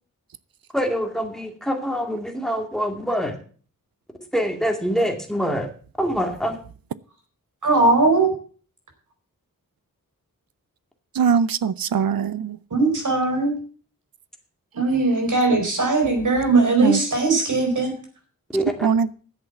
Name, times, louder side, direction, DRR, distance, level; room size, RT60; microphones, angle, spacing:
voice 1, 0.7-3.4 4.3-5.7 6.0-6.6 18.5-18.9, equal, ahead, 2.2 m, -25 dB
voice 2, 7.6-8.3 12.7-13.5 14.7-17.9, right 3 dB, 60° right, 4.5 m, -19 dB
voice 3, 11.2-12.6 16.5-17.0 18.8-19.1, right 6 dB, 85° right, 0.6 m, -21 dB
10.5 x 8.1 x 7.0 m
wide cardioid pair, 100°, 34 cm